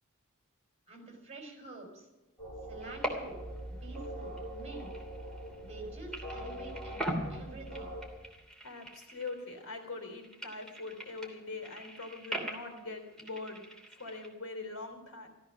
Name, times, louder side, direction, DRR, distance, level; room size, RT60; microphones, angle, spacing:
voice 1, 0.9-2.1 2.7-3.4 3.7-4.9 5.6-7.0 7.3-8.0, right 2 dB, 30° right, 2 dB, 5.0 m, -47 dB
sound 1, 2.4-8.1, right 1 dB, 20° left, 6.1 m, -43 dB
sound 2, 2.8-3.6 3.8-5.8 6.1-9.7 10.0-14.3, right 1 dB, 5° left, 2.9 m, -42 dB
voice 2, 8.6-13.6 14.0-15.3, left 3 dB, 75° left, 4 dB, 3.6 m, -42 dB
15.5 x 13.5 x 6.1 m, 1.0 s
head